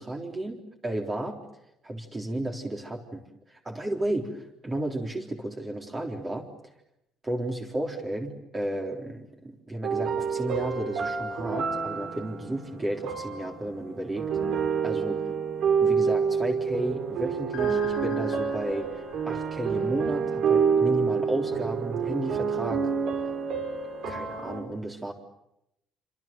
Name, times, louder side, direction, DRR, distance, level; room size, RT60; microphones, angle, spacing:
voice 1, 0.0-1.4 1.8-6.5 7.2-14.3 14.8-15.2 15.8-22.9 24.1-25.1, right 1 dB, 20° right, 1 dB, 3.8 m, -33 dB
sound 1, 9.8-24.6, right 6 dB, 60° right, 6.5 m, -28 dB
sound 2, 17.5-20.5, left 10 dB, 65° left, 3.1 m, -45 dB
28.5 x 26.5 x 7.7 m, 0.82 s
cardioid pair, 135°, 0 cm